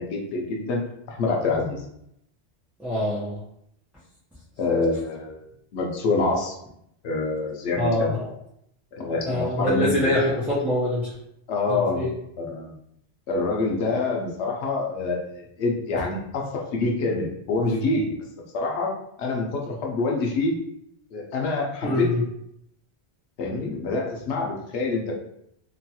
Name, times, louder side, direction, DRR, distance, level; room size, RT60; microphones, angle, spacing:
voice 1, 0.0-1.8 4.6-5.4 5.7-6.6 7.0-8.1 8.9-10.1 11.5-12.0 12.4-12.8 13.3-18.1 18.5-20.5 21.1-22.1 23.4-25.2, left 3 dB, 90° left, 0 dB, 0.9 m, -26 dB
voice 2, 2.8-3.4 7.8-8.3 9.3-11.1 11.7-12.1 21.8-22.2, left 1 dB, 5° right, -10 dB, 0.4 m, -24 dB
3.0 x 2.3 x 2.7 m, 0.75 s
omnidirectional pair, 1.1 m